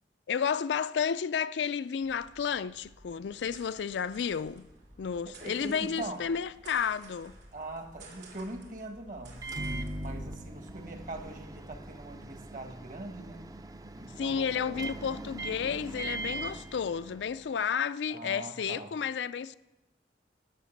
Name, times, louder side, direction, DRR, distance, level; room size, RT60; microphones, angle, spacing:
voice 1, 0.3-4.7 5.0-7.4 14.2-19.6, left 7 dB, 80° left, 0.4 m, -32 dB
sound 1, 2.0-11.3, right 2 dB, 70° right, 2.8 m, -53 dB
voice 2, 5.2-6.2 7.5-13.5 14.0-14.9 18.1-18.9, right 2 dB, 45° right, 1.6 m, -42 dB
Microwave oven, 9.4-17.5, right 2 dB, 20° right, 0.5 m, -40 dB
18.0 x 6.7 x 6.5 m
head